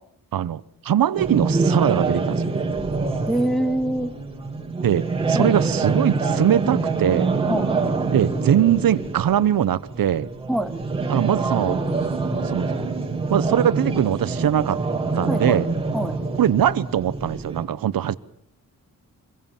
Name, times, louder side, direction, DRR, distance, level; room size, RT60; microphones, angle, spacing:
voice 1, 0.3-2.5 4.8-7.3 8.1-10.3 11.1-11.8 12.4-12.7 13.3-14.8 15.1-15.7 16.4-18.2, right 10 dB, 75° right, 1.2 m, -21 dB
sound 1, 1.2-17.6, right 3 dB, 15° right, 4.8 m, -25 dB
voice 2, 3.3-4.1 5.3-5.6 7.5-7.7 10.5-10.7 15.3-15.6 15.9-16.1, right 1 dB, ahead, 2.0 m, -24 dB
26.5 x 21.5 x 7.4 m
wide cardioid pair, 180°, 35 cm